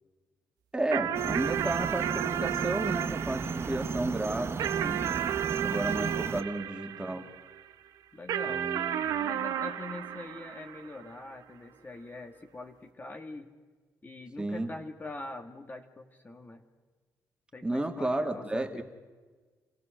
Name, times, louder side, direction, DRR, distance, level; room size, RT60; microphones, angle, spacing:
voice 1, 0.7-5.0 5.5-7.2 8.5-9.1 14.4-14.7 17.6-18.8, right 2 dB, 15° right, 4 dB, 2.2 m, -32 dB
sound 1, 0.9-7.6 8.3-11.1, right 10 dB, 80° right, 1.1 m, -33 dB
sound 2, 1.1-6.4, right 5 dB, 40° right, 1.0 m, -34 dB
voice 2, 5.9-6.2 8.1-8.7 9.1-13.5 14.0-16.6 17.5-18.8, left 2 dB, 30° left, 5 dB, 1.9 m, -43 dB
27.5 x 15.5 x 6.5 m, 1.4 s
cardioid pair, 70°, 7 cm